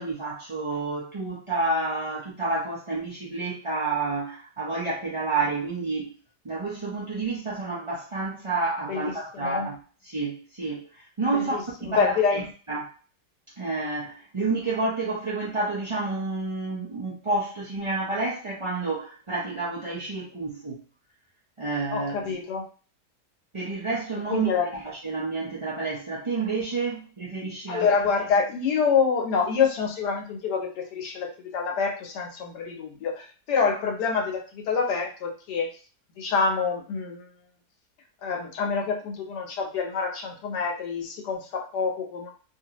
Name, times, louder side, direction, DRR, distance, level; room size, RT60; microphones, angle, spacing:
voice 1, 0.0-6.1 6.4-9.8 10.0-11.5 11.8-12.4 12.7-12.9 13.6-20.8 21.6-22.4 23.5-27.9, right 3 dB, 40° right, -7 dB, 0.4 m, -29 dB
voice 2, 8.9-9.7 11.3-12.4 21.9-22.7 24.3-24.7 27.7-35.7 36.2-37.3 38.2-42.3, left 5 dB, 85° left, 2 dB, 1.3 m, -26 dB
2.9 x 2.5 x 2.9 m, 0.38 s
omnidirectional pair, 1.7 m